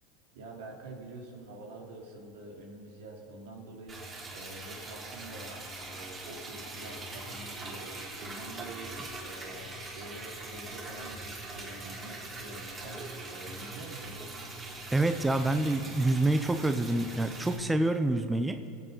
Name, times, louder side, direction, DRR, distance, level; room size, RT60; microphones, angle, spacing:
voice 1, 0.3-5.6 5.9-14.2, right 2 dB, 85° right, -1 dB, 3.1 m, -46 dB
Liquid, 3.9-17.6, right 2 dB, 25° right, 4.0 m, -42 dB
voice 2, 14.9-18.6, right 2 dB, 10° right, 8 dB, 0.7 m, -27 dB
25.0 x 8.9 x 5.6 m, 2.7 s
supercardioid pair, 125°, 0 cm